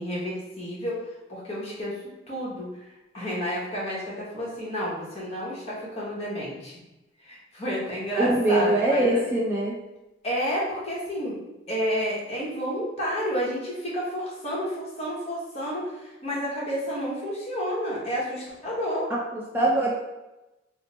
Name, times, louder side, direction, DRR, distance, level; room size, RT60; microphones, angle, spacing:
voice 1, 0.0-2.0 2.3-2.9 3.1-6.8 7.2-9.2 10.2-11.4 11.7-19.1, equal, 35° left, -6 dB, 1.1 m, -30 dB
voice 2, 8.2-9.8 19.3-19.9, right 1 dB, 10° right, -5 dB, 0.4 m, -22 dB
3.2 x 2.0 x 4.1 m, 1.0 s
head